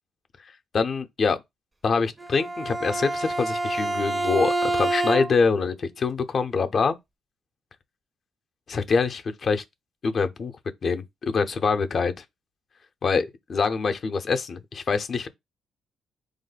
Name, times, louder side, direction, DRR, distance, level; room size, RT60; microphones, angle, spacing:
voice 1, 0.7-1.4 1.8-6.9 8.7-9.6 10.0-10.5 10.8-12.2 13.0-15.3, left 5 dB, 45° left, 0.5 m, -25 dB
Bowed string instrument, 2.2-5.6, right 2 dB, 15° right, 0.4 m, -27 dB
3.0 x 2.2 x 4.0 m
cardioid pair, 90°, 0 cm